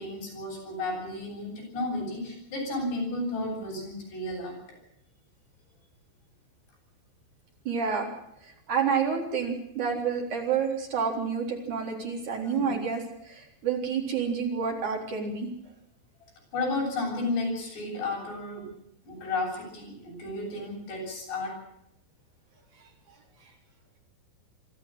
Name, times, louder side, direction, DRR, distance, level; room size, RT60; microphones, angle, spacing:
voice 1, 0.0-4.5 12.4-12.8 16.2-18.7 19.0-21.6, left 2 dB, 65° left, -1 dB, 9.8 m, -33 dB
voice 2, 7.6-8.1 8.7-15.5, right 6 dB, 45° right, 0 dB, 4.9 m, -29 dB
25.0 x 13.0 x 9.1 m, 0.75 s
omnidirectional pair, 5.2 m